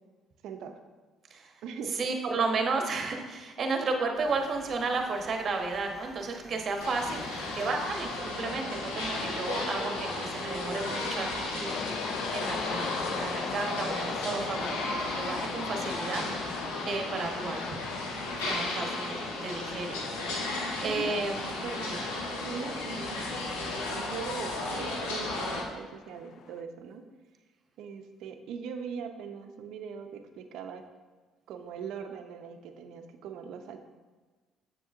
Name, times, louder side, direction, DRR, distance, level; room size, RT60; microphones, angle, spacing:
voice 1, 0.4-0.8 1.6-2.0 9.9-10.3 20.8-21.1 21.6-22.0 22.4-23.4 23.9-27.1 27.8-30.8 31.5-33.8, right 6 dB, 70° right, 7 dB, 0.5 m, -41 dB
voice 2, 1.9-7.3 7.5-11.8 12.3-16.2 16.8-17.7 18.4-20.0 20.8-21.4, right 3 dB, 50° right, 3 dB, 1.0 m, -33 dB
sound 1, 4.1-8.9, right 1 dB, 10° right, 2.0 m, -52 dB
sound 2, 6.8-25.6, left 2 dB, 90° left, 1.0 m, -34 dB
sound 3, 11.6-26.6, left 7 dB, 60° left, 0.4 m, -42 dB
7.0 x 6.7 x 2.5 m, 1.3 s
supercardioid pair, 65°, 0 cm